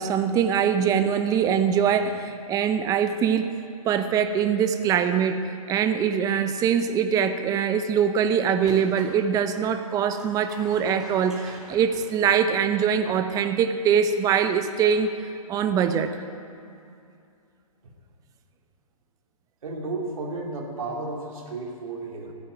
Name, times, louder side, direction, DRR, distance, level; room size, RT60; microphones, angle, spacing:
voice 1, 0.0-3.5 3.8-15.1 15.5-16.2, right 7 dB, 20° right, 9 dB, 0.7 m, -23 dB
sound 1, 8.6-9.2 10.1-12.9, equal, 5° right, 3.2 m, -46 dB
voice 2, 19.6-22.3, right 3 dB, 65° right, 0 dB, 3.0 m, -33 dB
15.5 x 8.6 x 8.8 m, 2.5 s
hypercardioid pair, 130°, 19 cm